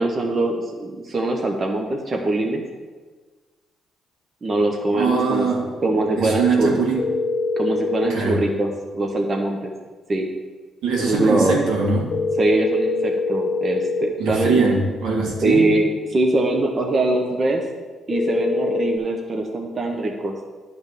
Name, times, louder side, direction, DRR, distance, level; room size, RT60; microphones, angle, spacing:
voice 1, 0.0-2.6 4.4-5.5 5.8-6.8 7.6-9.7 10.1-10.3 11.0-11.6 12.4-14.6 15.4-17.6 18.1-20.3, right 2 dB, 35° right, 2 dB, 1.0 m, -22 dB
voice 2, 4.9-5.7 6.2-7.1 8.1-8.4 10.8-12.1 14.2-15.7, right 4 dB, 85° right, -2 dB, 1.8 m, -22 dB
sound 1, 7.0-8.1 12.1-14.1 18.1-19.0, left 3 dB, 40° left, 1.3 m, -23 dB
10.0 x 3.5 x 6.8 m, 1.4 s
cardioid pair, 90°, 0 cm